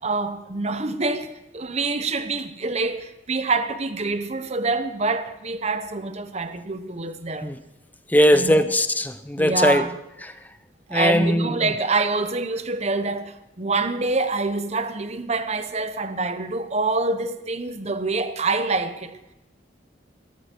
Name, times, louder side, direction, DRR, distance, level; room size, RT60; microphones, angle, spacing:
voice 1, 0.0-7.5 8.3-8.7 9.4-10.0 10.9-19.2, right 3 dB, 35° right, 1.0 m, -26 dB
voice 2, 8.1-9.8 10.9-11.5, equal, 10° left, 0.7 m, -19 dB
17.0 x 14.5 x 4.6 m
head